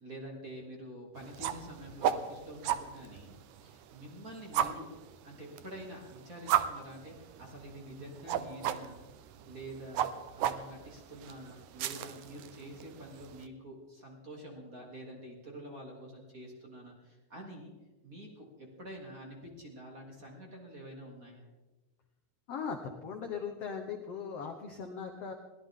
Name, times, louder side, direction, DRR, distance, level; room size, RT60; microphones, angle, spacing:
voice 1, 0.0-4.9 5.2-9.0 9.5-10.0 10.3-17.7 18.0-21.4, right 1 dB, 25° right, -1 dB, 2.7 m, -47 dB
sound 1, 1.2-13.5, right 10 dB, 80° right, 1.7 m, -36 dB
voice 2, 22.5-25.3, left 6 dB, 70° left, 4 dB, 1.4 m, -39 dB
22.0 x 16.5 x 3.7 m, 1.2 s
omnidirectional pair, 4.5 m